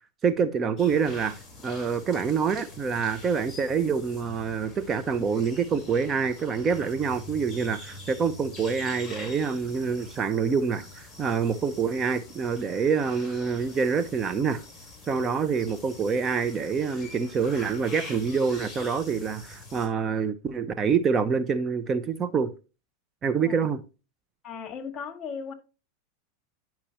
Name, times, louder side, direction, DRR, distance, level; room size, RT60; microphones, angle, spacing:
voice 1, 0.2-14.6 15.1-22.5 23.2-23.8, right 6 dB, 25° right, 0.6 m, -26 dB
sound 1, 0.8-19.9, left 2 dB, 10° left, 3.5 m, -45 dB
voice 2, 23.4-23.8 24.4-25.5, left 6 dB, 30° left, 1.9 m, -37 dB
10.0 x 5.8 x 2.9 m
hypercardioid pair, 120°, 0 cm